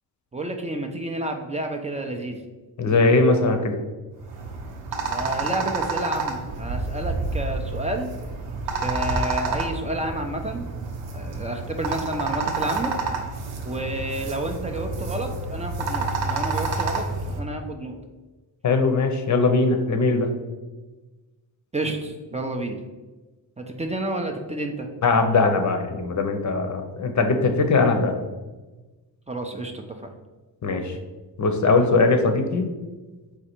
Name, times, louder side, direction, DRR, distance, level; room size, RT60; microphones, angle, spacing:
voice 1, 0.3-2.4 5.1-8.1 8.7-10.7 11.1-13.0 13.6-17.1 17.4-18.0 21.7-22.8 23.6-24.9 29.3-30.1, right 1 dB, 15° right, 3 dB, 0.5 m, -30 dB
voice 2, 2.8-3.7 18.6-20.3 25.0-28.2 30.6-31.0 31.4-32.7, left 3 dB, 35° left, 6 dB, 0.7 m, -20 dB
sound 1, 4.2-17.4, right 3 dB, 65° right, 0.8 m, -29 dB
4.1 x 2.4 x 4.4 m, 1.2 s
hypercardioid pair, 50°, 47 cm